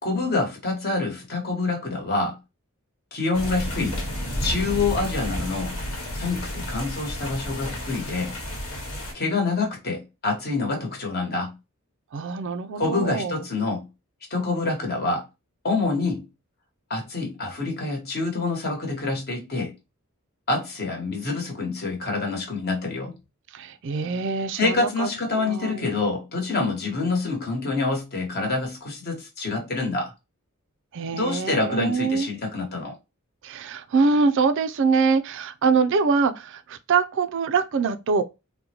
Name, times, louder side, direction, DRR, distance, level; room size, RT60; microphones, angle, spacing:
voice 1, 0.0-2.4 3.1-4.0 4.4-5.8 6.1-8.4 9.1-11.5 12.8-13.9 14.3-15.2 15.6-16.2 16.9-19.7 20.5-23.2 24.6-30.1 31.1-32.9, left 3 dB, 45° left, 1.1 m, -26 dB
sound 1, 3.3-9.1, equal, 80° left, 1.2 m, -31 dB
voice 2, 12.1-13.4 23.5-25.1 25.3-25.8 30.9-32.3 33.4-38.2, right 4 dB, 55° right, 0.4 m, -24 dB
3.8 x 2.1 x 2.8 m
head